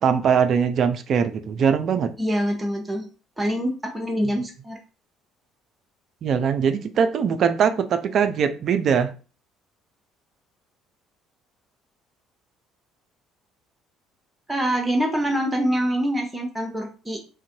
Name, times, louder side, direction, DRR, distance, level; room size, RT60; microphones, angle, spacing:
voice 1, 0.0-2.1 6.2-9.1, right 7 dB, 45° right, 0.3 m, -21 dB
voice 2, 2.2-3.0 3.4-4.8 14.5-17.2, equal, 10° right, 0.7 m, -25 dB
2.5 x 2.1 x 2.5 m
figure-of-eight pair, 50°, 0 cm